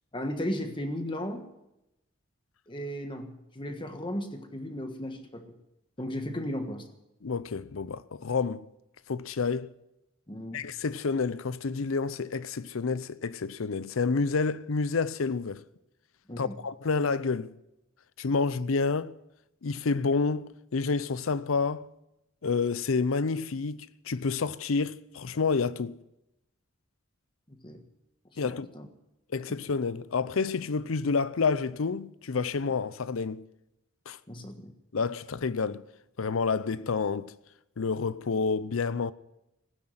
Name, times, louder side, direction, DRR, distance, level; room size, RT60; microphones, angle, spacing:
voice 1, 0.1-1.4 2.7-5.4 6.0-6.8 10.3-10.6 16.3-16.5 27.5-27.8 28.4-28.9 34.3-34.7, equal, 25° left, 1.4 m, -35 dB
voice 2, 7.2-8.6 9.1-9.7 10.5-15.6 16.4-17.5 18.2-19.1 19.6-21.9 22.4-26.0 28.4-28.7 29.3-33.4 34.1-34.2 34.9-35.8 36.2-37.3 37.8-39.1, left 4 dB, 80° left, 0.6 m, -29 dB
16.0 x 9.7 x 7.8 m
head